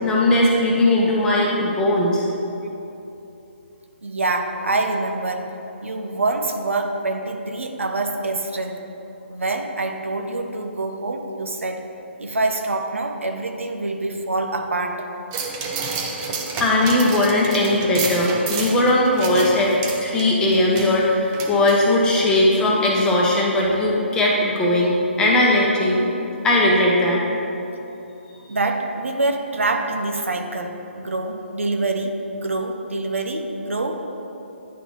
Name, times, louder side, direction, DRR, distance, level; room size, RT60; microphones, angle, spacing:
voice 1, 0.0-2.3 16.6-26.1 26.4-27.2, left 1 dB, 10° left, -3 dB, 0.8 m, -18 dB
voice 2, 4.0-5.5 5.8-8.8 9.3-11.8 12.2-15.1 28.5-34.0, right 2 dB, 85° right, 4 dB, 0.7 m, -25 dB
sound 1, 15.3-22.2 22.6-22.7, right 4 dB, 25° right, 0.6 m, -30 dB
10.0 x 4.0 x 3.1 m, 2.9 s
figure-of-eight pair, 145°, 7 cm